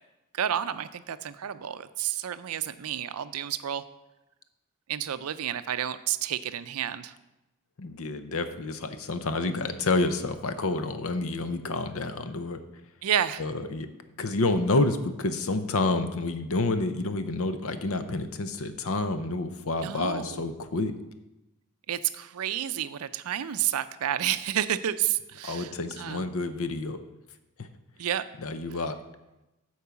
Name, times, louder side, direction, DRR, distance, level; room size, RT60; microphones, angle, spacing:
voice 1, 0.3-3.8 4.9-7.1 13.0-13.4 19.8-20.4 21.9-26.3 28.0-28.2, right 10 dB, 70° right, 13 dB, 0.4 m, -30 dB
voice 2, 7.8-12.6 13.4-13.9 14.2-21.0 25.4-27.0 27.6-27.7 28.4-29.0, left 2 dB, 65° left, 10 dB, 0.7 m, -29 dB
8.5 x 4.7 x 6.9 m, 0.98 s
head